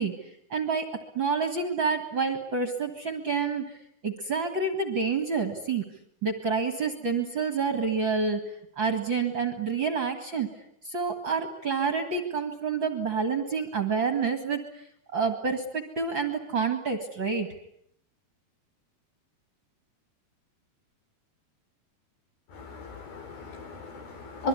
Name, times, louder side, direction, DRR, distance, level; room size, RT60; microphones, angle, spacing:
voice 1, 0.0-3.8 4.0-5.9 6.2-8.4 8.8-10.5 10.8-14.6 15.1-17.5, right 5 dB, 40° right, 8 dB, 2.2 m, -28 dB
voice 2, 22.6-24.5, left 2 dB, 70° left, 6 dB, 6.2 m, -36 dB
25.5 x 23.0 x 9.8 m, 0.73 s
omnidirectional pair, 4.4 m